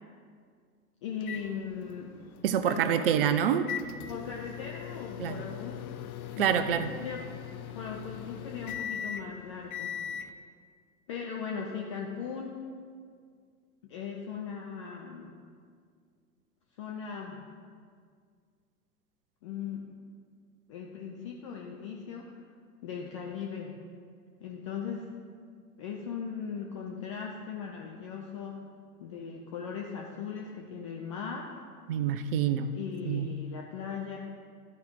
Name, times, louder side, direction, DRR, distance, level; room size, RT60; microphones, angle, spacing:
voice 1, 1.0-2.1 2.6-3.3 4.1-5.9 6.3-7.2 7.7-9.9 11.1-12.6 13.9-15.3 16.8-17.4 19.4-19.9 20.7-22.4 22.8-23.8 24.4-25.1 25.8-28.6 29.0-31.5 32.7-34.2, left 6 dB, 25° left, -1 dB, 0.4 m, -38 dB
sound 1, 1.2-10.3, left 9 dB, 65° left, 0.7 m, -41 dB
voice 2, 2.4-3.7 5.2-5.4 6.4-6.9 31.9-32.7 33.1-33.3, right 9 dB, 40° right, 11 dB, 0.4 m, -26 dB
12.0 x 4.9 x 4.6 m, 2.1 s
figure-of-eight pair, 100°, 47 cm